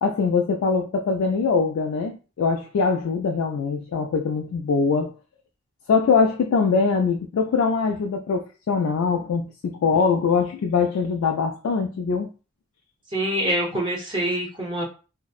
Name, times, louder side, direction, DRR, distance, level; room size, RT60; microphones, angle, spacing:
voice 1, 0.0-5.1 5.9-12.3, left 5 dB, 75° left, 0.3 m, -22 dB
voice 2, 13.1-14.8, right 1 dB, 20° right, 0.6 m, -25 dB
2.6 x 2.0 x 2.3 m
head